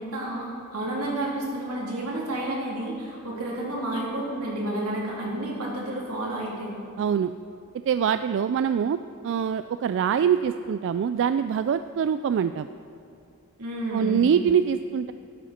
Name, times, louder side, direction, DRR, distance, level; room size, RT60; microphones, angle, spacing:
voice 1, 0.0-6.7 13.6-14.2, right 1 dB, 85° right, -3 dB, 3.3 m, -30 dB
voice 2, 7.0-7.3 7.9-9.0 9.2-12.7 13.9-15.1, right 7 dB, 60° right, 11 dB, 0.3 m, -24 dB
15.5 x 11.5 x 4.3 m, 2.6 s
head